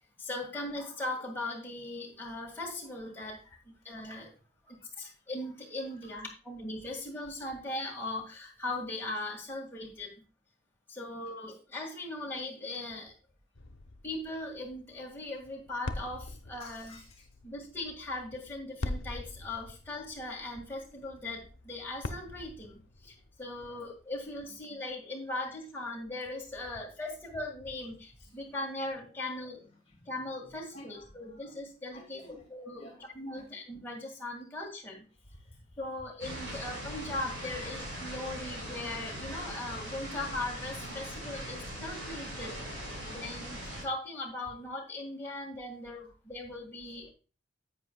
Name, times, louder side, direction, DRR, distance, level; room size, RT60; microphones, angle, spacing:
voice 1, 0.2-4.3 4.7-10.1 10.9-13.1 14.0-17.0 17.4-29.6 30.1-32.9 33.1-35.1 35.8-42.6 43.1-47.1, left 2 dB, 10° left, -2 dB, 1.9 m, -39 dB
sound 1, 13.5-24.6, left 2 dB, 80° left, 0.8 m, -44 dB
voice 2, 16.6-17.3 23.6-23.8 24.6-24.8 28.2-28.4 29.6-31.6 31.9-32.5 32.8-33.6 34.6-34.7 35.2-35.8 42.8-43.1 45.3-45.5 45.9-46.1, left 2 dB, 30° left, 1 dB, 1.6 m, -55 dB
sound 2, 36.2-43.8, equal, 85° right, 4.7 m, -40 dB
10.5 x 8.2 x 2.3 m, 0.33 s
head